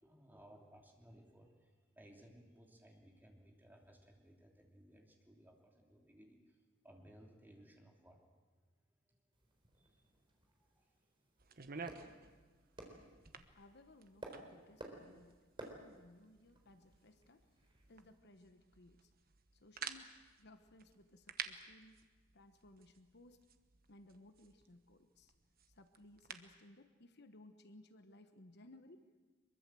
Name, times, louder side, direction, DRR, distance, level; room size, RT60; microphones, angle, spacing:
voice 1, 0.0-6.6 6.8-8.2 9.7-10.1 10.6-10.9, equal, 10° right, 0 dB, 3.2 m, -62 dB
sound 1, 9.3-18.2, right 1 dB, 25° right, 4.1 m, -56 dB
sound 2, 11.4-26.6, right 6 dB, 50° right, 1.2 m, -53 dB
voice 2, 13.6-17.4 17.9-19.1 19.5-22.0 22.3-23.4 23.9-25.3 25.7-29.2, left 1 dB, 55° left, 8 dB, 1.2 m, -61 dB
24.0 x 22.5 x 7.7 m, 1.3 s
head